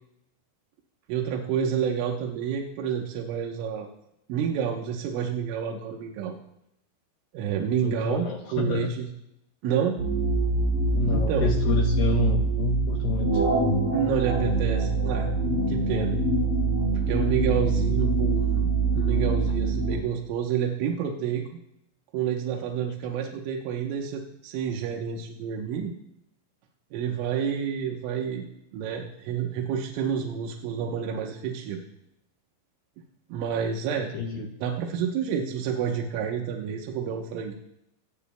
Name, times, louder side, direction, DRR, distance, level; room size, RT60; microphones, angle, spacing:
voice 1, 1.1-3.9 4.3-6.4 7.3-9.1 9.6-10.0 11.1-11.5 13.9-16.2 17.1-18.7 18.9-21.4 22.1-25.9 26.9-28.5 28.7-31.8 33.3-34.1 34.4-37.5, right 8 dB, 90° right, 1 dB, 3.6 m, -29 dB
voice 2, 7.8-8.9 10.9-13.4 33.9-34.5, left 3 dB, 85° left, 2 dB, 2.0 m, -28 dB
sound 1, 10.0-20.0, right 3 dB, 45° right, 3.7 m, -24 dB
24.0 x 17.0 x 2.2 m, 0.84 s
omnidirectional pair, 5.5 m